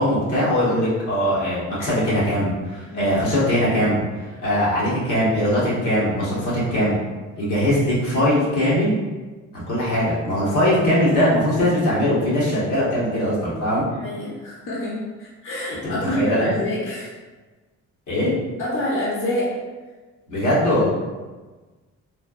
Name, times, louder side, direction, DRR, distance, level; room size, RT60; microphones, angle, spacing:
voice 1, 0.0-4.0 4.4-7.0 7.4-9.0 9.5-13.9 15.8-16.5 18.1-18.3 20.3-20.9, equal, 85° left, -8 dB, 1.2 m, -21 dB
voice 2, 14.0-17.1 18.6-19.5, left 1 dB, 45° left, -6 dB, 0.8 m, -27 dB
3.2 x 2.2 x 2.3 m, 1.3 s
cardioid pair, 90°, 30 cm